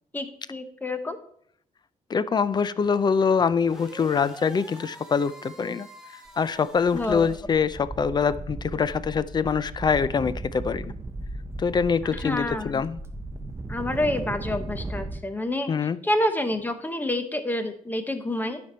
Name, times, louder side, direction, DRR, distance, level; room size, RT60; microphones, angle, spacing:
voice 1, 0.1-1.2 6.9-7.3 12.1-12.8 13.7-15.8 16.0-18.6, left 1 dB, 15° left, 9 dB, 0.8 m, -28 dB
voice 2, 2.1-5.9 6.4-10.9 11.6-13.0 15.7-16.0, left 6 dB, 30° left, 16 dB, 0.4 m, -24 dB
sound 1, 3.6-7.4, right 1 dB, 5° right, 1.4 m, -46 dB
sound 2, 6.3-6.4 6.7-15.2, right 2 dB, 20° right, 0.6 m, -36 dB
12.0 x 5.2 x 4.3 m, 0.65 s
wide cardioid pair, 155°, 14 cm